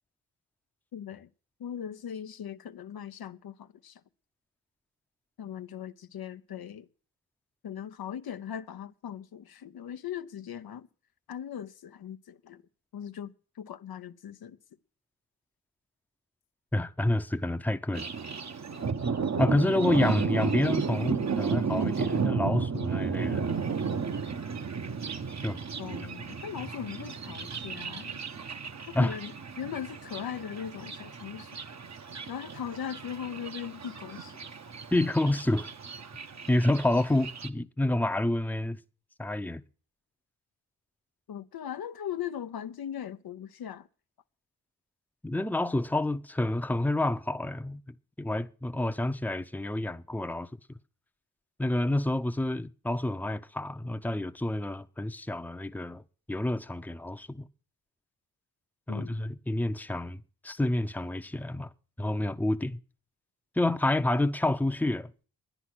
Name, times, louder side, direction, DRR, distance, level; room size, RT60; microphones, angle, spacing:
voice 1, 0.9-1.3 1.6-4.0 5.4-6.9 7.6-10.9 11.3-12.6 12.9-14.6 25.8-28.2 28.9-31.6 32.3-34.4 41.3-43.9 58.9-59.2, left 9 dB, 70° left, 0.7 m, -39 dB
voice 2, 16.7-18.0 19.4-23.5 25.4-25.6 28.9-29.2 34.9-35.7 36.5-38.8 39.2-39.6 45.2-47.8 48.2-50.5 51.6-56.0 56.3-57.5 58.9-61.7 62.0-62.8 63.6-65.1, left 1 dB, 5° left, 0.8 m, -28 dB
Thunder, 17.9-37.5, right 5 dB, 45° right, 1.1 m, -33 dB
11.5 x 10.0 x 6.1 m
cardioid pair, 60°, 38 cm